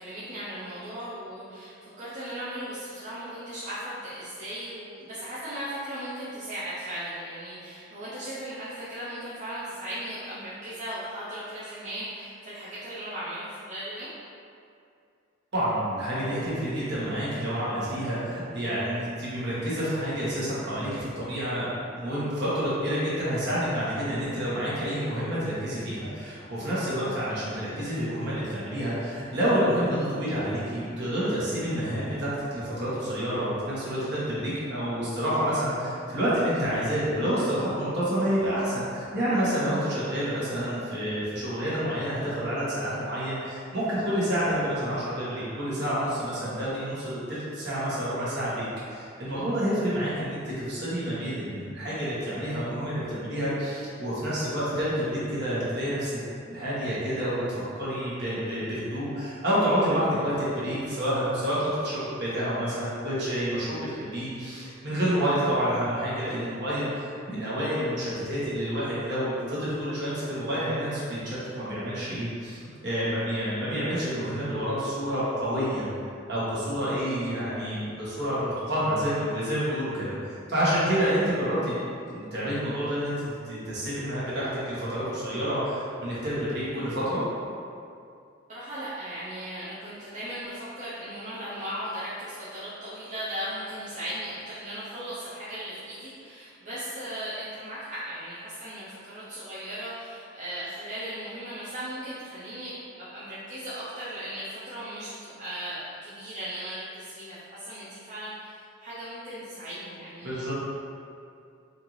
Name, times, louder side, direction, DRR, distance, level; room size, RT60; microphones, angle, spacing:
voice 1, 0.0-14.1 88.5-102.7 103.0-110.5, right 1 dB, 35° right, -12 dB, 0.7 m, -37 dB
voice 2, 15.5-56.2 56.5-75.9 76.3-81.7 82.1-83.1 83.4-87.2 110.2-110.5, equal, 60° right, -9 dB, 1.3 m, -28 dB
4.4 x 2.6 x 3.1 m, 2.4 s
head